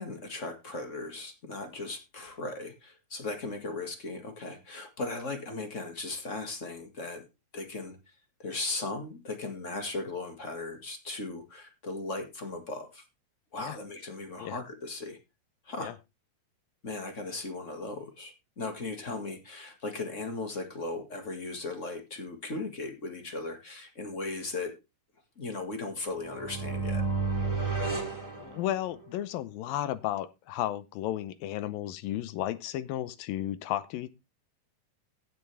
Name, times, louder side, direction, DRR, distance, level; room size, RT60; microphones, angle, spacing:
voice 1, 0.0-7.3 7.5-13.0 13.5-15.2 15.6-15.9 16.8-24.7 25.3-27.0, left 3 dB, 30° left, 6 dB, 1.4 m, -37 dB
sound 1, 26.1-29.1, right 4 dB, 5° right, 2.5 m, -32 dB
voice 2, 28.4-34.1, left 13 dB, 80° left, 15 dB, 2.5 m, -33 dB
15.5 x 7.8 x 3.4 m, 0.25 s
omnidirectional pair, 4.2 m